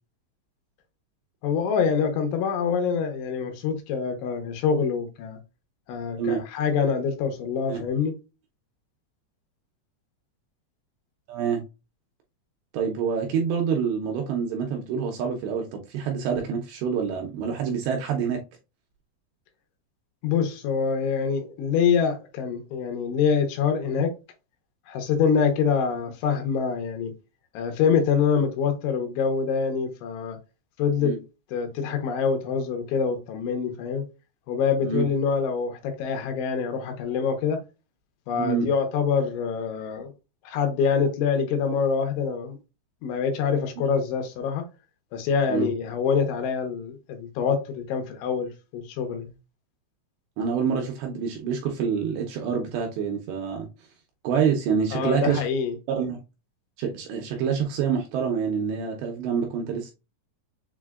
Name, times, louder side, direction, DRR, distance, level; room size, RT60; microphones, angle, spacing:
voice 1, 1.4-5.4 5.9-8.2 20.2-24.1 24.9-27.1 27.5-30.4 30.8-31.2 31.5-34.0 34.5-37.6 38.3-40.1 40.5-42.6 43.0-44.7 45.1-49.3 54.9-55.8, left 6 dB, 80° left, 3.1 m, -25 dB
voice 2, 11.3-11.6 12.7-18.4 31.0-31.2 34.8-35.0 38.3-38.7 45.5-45.7 50.4-53.7 54.2-55.4 55.9-56.2 56.8-59.9, right 6 dB, 80° right, 2.6 m, -26 dB
7.3 x 2.6 x 2.4 m
omnidirectional pair, 5.6 m